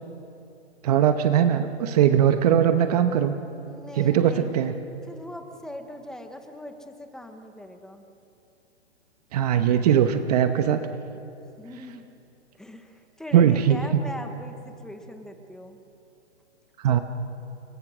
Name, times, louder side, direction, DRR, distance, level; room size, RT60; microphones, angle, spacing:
voice 1, 0.8-3.4 4.0-4.7 9.3-10.8 13.3-13.8 16.8-17.0, right 9 dB, 35° right, 8 dB, 1.0 m, -20 dB
voice 2, 3.6-4.5 5.1-8.0 11.6-12.0 12.6-15.8 16.9-17.0, left 1 dB, ahead, 6 dB, 0.6 m, -40 dB
30.0 x 22.0 x 6.2 m, 2.7 s
hypercardioid pair, 160°, 34 cm